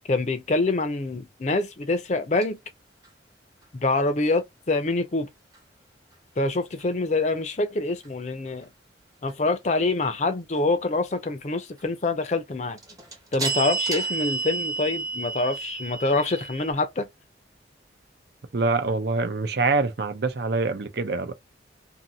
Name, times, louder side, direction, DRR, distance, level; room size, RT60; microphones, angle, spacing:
voice 1, 0.1-2.6 3.7-5.3 6.4-8.7 9.2-12.8 13.3-17.1, left 2 dB, 40° left, 0.5 m, -25 dB
sound 1, 2.4-2.5 12.8-16.7, right 4 dB, 20° right, 0.7 m, -30 dB
voice 2, 18.5-21.3, right 3 dB, 65° right, 0.6 m, -25 dB
2.6 x 2.6 x 2.8 m
head